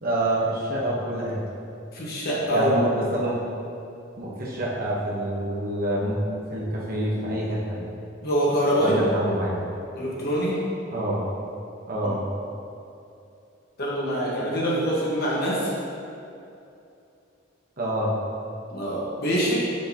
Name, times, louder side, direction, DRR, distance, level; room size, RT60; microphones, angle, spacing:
voice 1, 0.0-1.4 2.5-3.4 4.2-7.9 8.8-9.5 10.9-11.2 11.9-12.2 17.8-18.1, right 1 dB, 50° right, -5 dB, 1.1 m, -27 dB
voice 2, 1.9-2.7 8.2-9.0 9.9-10.6 13.8-15.7 18.7-19.5, equal, 55° left, -6 dB, 1.4 m, -24 dB
6.4 x 5.1 x 2.9 m, 2.7 s
head